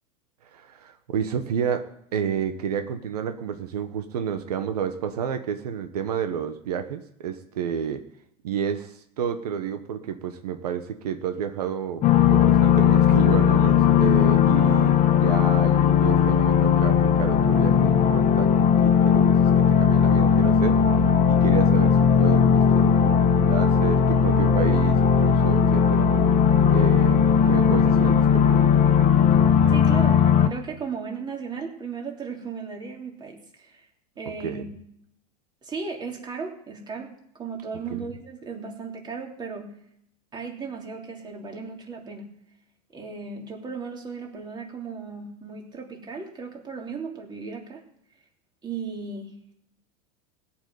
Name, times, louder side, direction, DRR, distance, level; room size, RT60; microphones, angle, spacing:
voice 1, 0.5-1.8 2.1-8.0 8.4-12.0 12.3-20.8 21.2-26.3 26.7-28.6 34.4-34.7 37.9-38.1, right 8 dB, 90° right, 7 dB, 1.3 m, -30 dB
sound 1, 12.0-30.5, left 7 dB, 40° left, 1.3 m, -18 dB
voice 2, 29.7-33.9 34.2-34.7 35.6-39.8 40.3-42.3 42.9-47.8 48.6-49.4, right 5 dB, 20° right, 1 dB, 3.1 m, -36 dB
17.0 x 6.1 x 9.4 m, 0.72 s
supercardioid pair, 115°, 19 cm